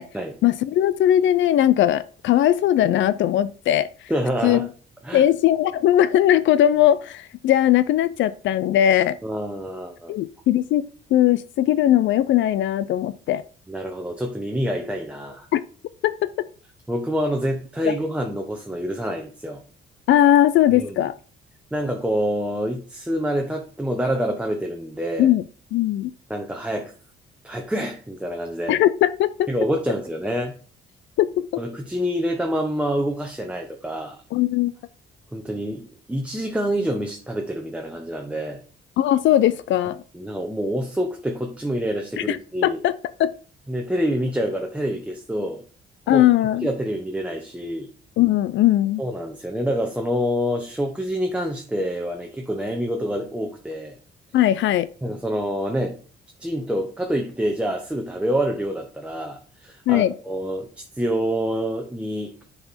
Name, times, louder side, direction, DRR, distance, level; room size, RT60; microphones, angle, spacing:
voice 1, 0.4-3.9 4.4-4.7 5.1-9.2 10.1-10.9 11.1-13.4 15.5-15.6 16.0-16.1 17.8-17.9 20.1-21.1 25.2-25.4 25.7-26.1 28.7-29.5 31.2-31.5 34.3-34.7 39.0-40.0 42.2-43.3 46.1-46.7 48.2-49.0 54.3-54.9 59.9-60.1, left 12 dB, 70° left, 15 dB, 0.4 m, -19 dB
voice 2, 4.1-4.7 5.0-5.2 9.2-10.1 13.7-15.5 16.9-19.6 20.7-20.9 21.7-25.3 26.3-26.9 27.4-28.8 29.5-30.5 31.6-34.2 35.3-38.6 40.1-42.8 43.7-45.6 46.1-46.3 46.6-47.9 49.0-54.0 55.0-56.0 56.4-62.3, equal, 5° right, 2 dB, 1.0 m, -27 dB
6.5 x 4.8 x 4.2 m, 0.40 s
cardioid pair, 90°, 20 cm